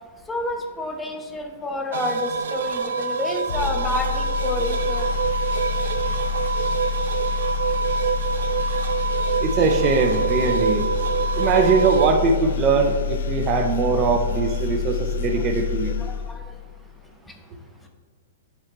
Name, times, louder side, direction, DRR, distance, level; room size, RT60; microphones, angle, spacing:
voice 1, 0.3-5.1 15.4-15.7 16.0-16.5, left 1 dB, 10° left, 3 dB, 0.7 m, -29 dB
sound 1, 1.9-12.1, right 5 dB, 75° right, 0.5 m, -25 dB
sound 2, 3.5-16.9, left 6 dB, 70° left, 0.3 m, -27 dB
voice 2, 9.4-10.9 11.3-15.9, right 4 dB, 35° right, 3 dB, 0.6 m, -21 dB
7.4 x 4.2 x 3.0 m, 1.4 s
hypercardioid pair, 125°, 0 cm